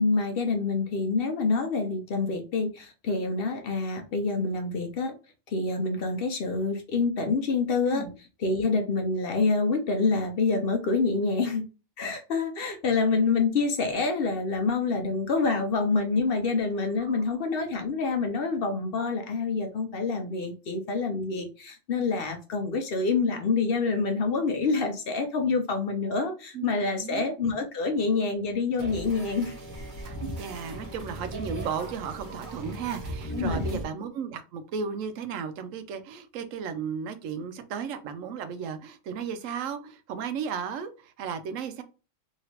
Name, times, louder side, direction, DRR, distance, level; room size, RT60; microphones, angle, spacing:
voice 1, 0.0-5.1 5.5-8.0 8.4-11.6 12.0-29.5 33.4-33.8, left 4 dB, 60° left, 5 dB, 0.7 m, -27 dB
voice 2, 26.5-27.2 30.0-41.8, right 6 dB, 90° right, 10 dB, 1.0 m, -35 dB
sound 1, 28.8-33.8, equal, 45° right, 0.9 m, -37 dB
3.1 x 2.8 x 2.9 m, 0.32 s
omnidirectional pair, 1.3 m